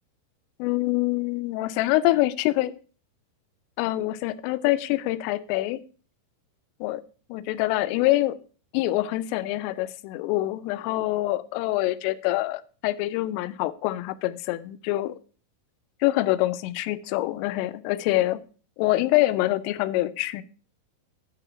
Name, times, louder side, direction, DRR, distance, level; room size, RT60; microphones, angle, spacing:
voice 1, 0.6-2.7 3.8-5.8 6.8-7.0 7.3-8.4 8.7-15.1 16.0-18.4 18.8-20.4, left 17 dB, 85° left, 15 dB, 3.1 m, -25 dB
8.9 x 5.0 x 5.8 m, 0.38 s
omnidirectional pair, 5.7 m